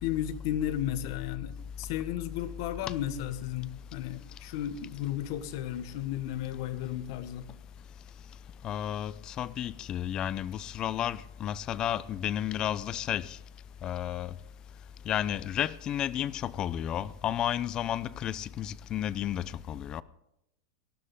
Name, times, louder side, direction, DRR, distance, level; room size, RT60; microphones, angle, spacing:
voice 1, 0.0-7.5, left 11 dB, 60° left, 1.2 m, -34 dB
voice 2, 8.6-13.4 13.8-14.3 15.1-20.0, left 11 dB, 30° left, 0.6 m, -32 dB
18.5 x 13.0 x 3.9 m
supercardioid pair, 130°, 2 cm